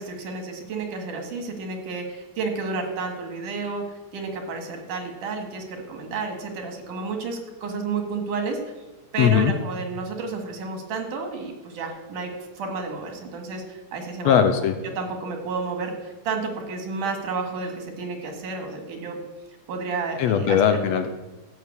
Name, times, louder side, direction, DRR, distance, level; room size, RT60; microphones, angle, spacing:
voice 1, 0.0-3.9 4.1-8.6 9.1-14.4 14.8-19.2 19.7-20.8, right 4 dB, 90° right, 3 dB, 3.5 m, -31 dB
voice 2, 9.2-9.5 14.3-14.8 20.2-21.1, left 8 dB, 70° left, 7 dB, 1.8 m, -19 dB
13.0 x 6.9 x 8.4 m, 1.1 s
omnidirectional pair, 3.5 m